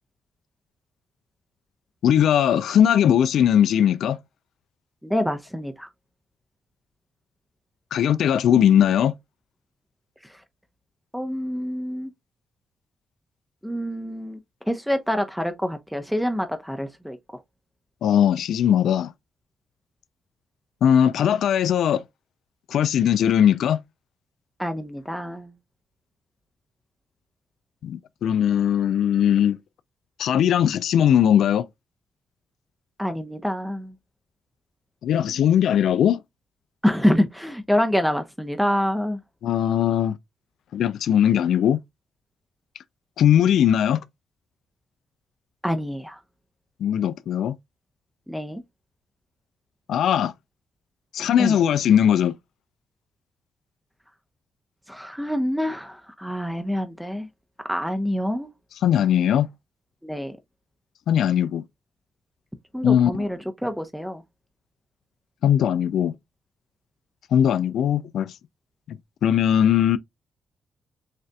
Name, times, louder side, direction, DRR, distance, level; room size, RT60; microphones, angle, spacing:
voice 1, 2.0-4.2 7.9-9.1 18.0-19.1 20.8-22.0 22.7-23.8 27.8-29.6 30.2-31.7 35.0-36.2 39.4-40.1 40.7-41.8 43.2-44.0 46.8-47.6 49.9-50.3 51.1-52.4 58.8-59.5 61.1-61.6 62.8-63.3 65.4-66.1 67.3-68.3 69.2-70.0, left 9 dB, 75° left, 0.3 m, -19 dB
voice 2, 5.0-5.9 11.1-12.1 13.6-14.4 14.7-17.2 24.6-25.5 33.0-33.9 36.8-39.2 45.6-46.2 48.3-48.6 51.4-51.5 54.9-57.3 57.7-58.5 60.0-60.3 62.7-64.2, equal, ahead, 0.7 m, -26 dB
6.4 x 2.5 x 2.2 m
supercardioid pair, 65°, 0 cm